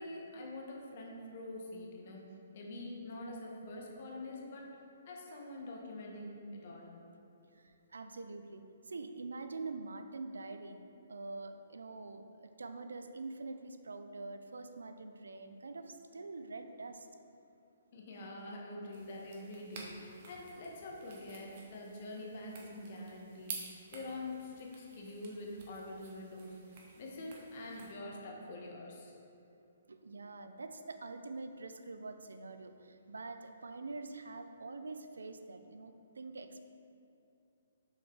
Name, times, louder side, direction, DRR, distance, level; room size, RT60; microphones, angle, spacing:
voice 1, 0.0-4.8 5.1-7.0 17.9-29.1, left 1 dB, 50° left, -1 dB, 1.5 m, -45 dB
voice 2, 7.6-10.8 11.1-17.1 29.9-36.6, right 3 dB, 85° right, 8 dB, 0.5 m, -45 dB
sound 1, 18.9-27.9, right 4 dB, 50° right, 1.3 m, -52 dB
6.5 x 5.5 x 4.8 m, 2.7 s
hypercardioid pair, 135°, 0 cm